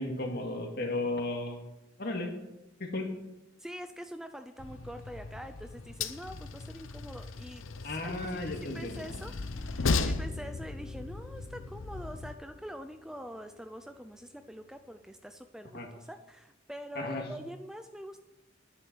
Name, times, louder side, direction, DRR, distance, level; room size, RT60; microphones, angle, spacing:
voice 1, 0.0-1.6 2.0-2.3 2.8-3.1 7.8-9.0 15.7-15.9 17.0-17.3, left 2 dB, 50° left, 3 dB, 2.1 m, -34 dB
voice 2, 3.6-8.1 8.4-9.3 9.6-18.2, equal, 5° right, 8 dB, 0.4 m, -45 dB
Train, 4.6-12.3, left 3 dB, 80° left, 0.8 m, -36 dB
Piano, 7.9-15.4, equal, 40° right, 1.9 m, -55 dB
11.0 x 10.0 x 6.2 m, 0.95 s
head